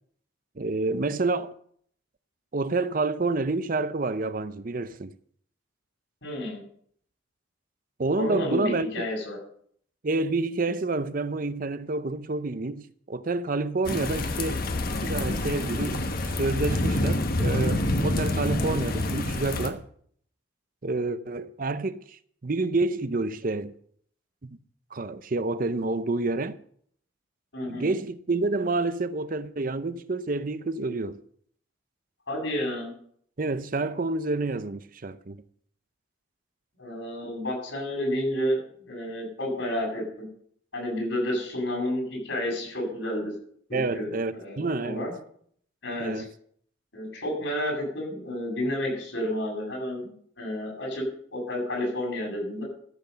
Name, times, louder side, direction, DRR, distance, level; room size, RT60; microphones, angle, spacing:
voice 1, 0.6-1.5 2.5-5.1 8.0-9.1 10.0-14.7 15.0-16.1 16.4-19.8 20.8-23.7 24.4-24.5 24.9-26.6 27.7-31.2 33.4-35.4 43.7-45.1 46.0-46.3, right 3 dB, 45° right, 0.6 m, -28 dB
voice 2, 6.2-6.6 8.2-9.4 18.4-18.8 27.5-28.0 32.3-32.9 36.8-38.6 38.9-40.0 40.7-43.3 43.7-45.1 45.8-46.3 46.9-50.1 50.4-51.0 51.3-52.6, left 1 dB, 70° left, 7.8 m, -30 dB
sound 1, 13.8-19.7, left 1 dB, 45° left, 1.3 m, -27 dB
14.5 x 8.0 x 6.8 m
head